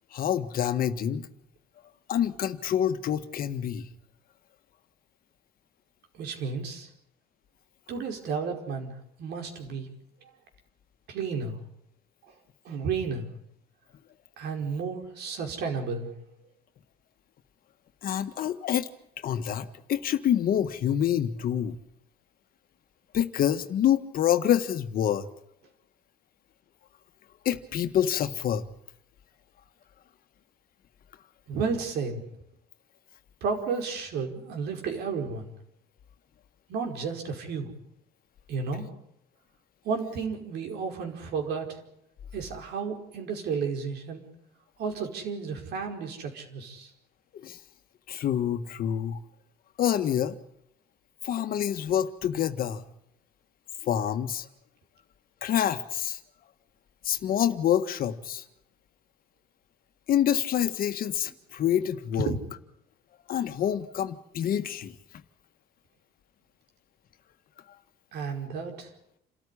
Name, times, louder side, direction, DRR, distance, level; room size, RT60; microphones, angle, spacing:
voice 1, 0.1-1.3 2.1-3.9 18.0-18.9 19.2-21.8 23.1-25.3 27.4-28.6 47.3-47.6 48.1-49.2 49.8-50.4 51.2-52.8 53.8-54.5 55.4-56.2 57.0-58.4 60.1-62.3 63.3-64.9, left 10 dB, 60° left, 9 dB, 1.6 m, -27 dB
voice 2, 6.1-6.9 7.9-9.9 10.2-10.3 11.1-11.6 12.3-12.4 12.6-13.3 14.4-16.1 31.5-32.2 33.4-35.5 36.7-37.7 38.5-38.9 39.8-41.8 42.3-44.2 44.8-46.9 62.3-62.4 68.1-68.9, right 5 dB, 75° right, 4 dB, 5.0 m, -32 dB
28.5 x 13.5 x 10.0 m, 0.79 s
cardioid pair, 110°, 17 cm